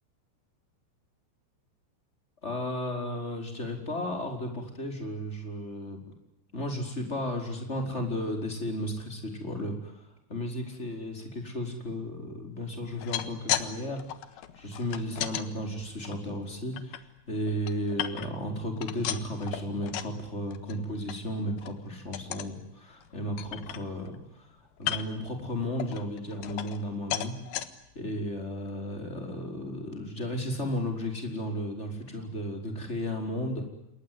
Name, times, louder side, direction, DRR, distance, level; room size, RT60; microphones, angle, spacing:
voice 1, 2.4-6.0 6.5-9.9 10.3-14.0 14.6-24.2 24.8-27.3 27.9-33.6, left 1 dB, 15° left, 4 dB, 5.0 m, -34 dB
sound 1, 12.8-13.7 14.0-15.5 16.0-17.0 17.4-18.5 18.8-20.2 20.5-20.8 21.1-21.2 21.6-21.8 22.1-22.5 23.0-23.1 23.4-24.2 24.8-25.3 25.8-26.9 27.1-27.7 28.3-28.4 28.7-28.8, left 12 dB, 65° left, 2.8 m, -34 dB
28.5 x 22.0 x 9.6 m, 0.85 s
omnidirectional pair, 5.5 m